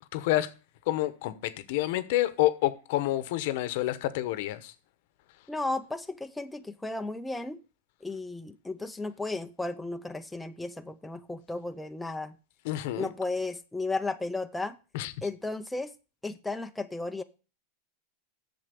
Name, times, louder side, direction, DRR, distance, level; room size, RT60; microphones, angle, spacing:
voice 1, 0.1-0.5 0.9-4.7 12.6-13.1 14.9-15.1, left 15 dB, 65° left, 1.0 m, -28 dB
voice 2, 5.5-7.6 8.0-12.4 13.0-14.8 15.2-15.9 16.2-17.2, left 2 dB, 5° left, 0.6 m, -34 dB
7.9 x 7.0 x 6.9 m
supercardioid pair, 125°, 0 cm